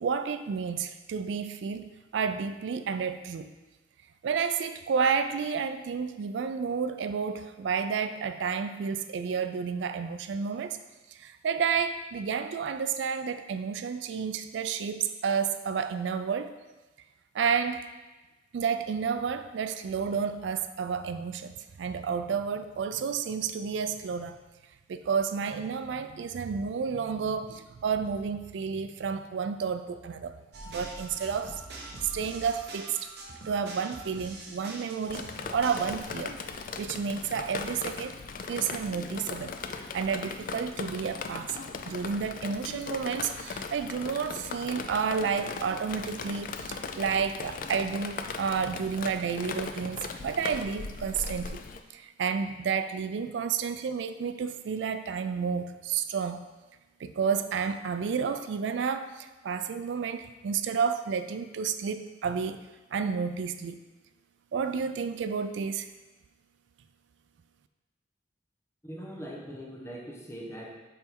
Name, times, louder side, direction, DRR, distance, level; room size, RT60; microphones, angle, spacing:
voice 1, 0.0-3.5 4.2-10.8 11.1-16.5 17.3-17.8 18.5-24.4 24.9-30.4 30.7-31.6 32.0-33.0 33.5-36.4 36.8-38.2 38.5-39.5 39.9-41.6 41.9-51.6 51.9-56.4 57.0-62.6 62.9-63.8 64.5-65.9, right 6 dB, 80° right, 10 dB, 0.3 m, -31 dB
sound 1, 30.5-36.0, right 2 dB, 60° right, 0.9 m, -43 dB
Drip, 35.1-51.8, left 4 dB, 50° left, 0.4 m, -38 dB
voice 2, 68.8-70.7, equal, 15° left, -3 dB, 1.0 m, -41 dB
5.6 x 4.2 x 4.5 m, 1.1 s
head